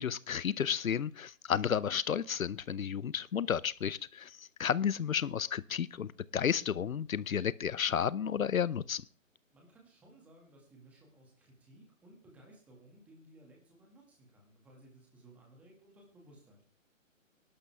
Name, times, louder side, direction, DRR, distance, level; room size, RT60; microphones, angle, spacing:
voice 1, 0.0-9.0, left 8 dB, 85° left, 0.8 m, -32 dB
voice 2, 9.5-16.6, right 1 dB, 5° right, 2.0 m, -59 dB
20.5 x 12.0 x 3.5 m
hypercardioid pair, 170°, 40 cm